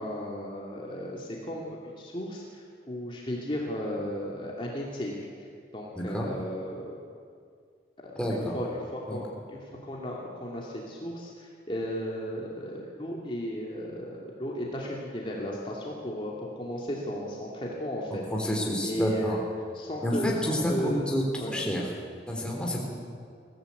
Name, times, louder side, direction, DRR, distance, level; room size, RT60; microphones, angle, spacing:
voice 1, 0.0-1.6 2.0-5.1 5.7-7.0 8.0-18.2 18.8-19.4 19.7-21.1 21.4-21.5, equal, 30° left, -3 dB, 2.6 m, -35 dB
voice 2, 5.9-6.3 8.1-8.6 9.1-9.2 18.3-19.4 20.0-21.9 22.3-23.0, equal, 5° left, -2 dB, 3.5 m, -29 dB
22.0 x 15.0 x 8.4 m, 2.2 s
head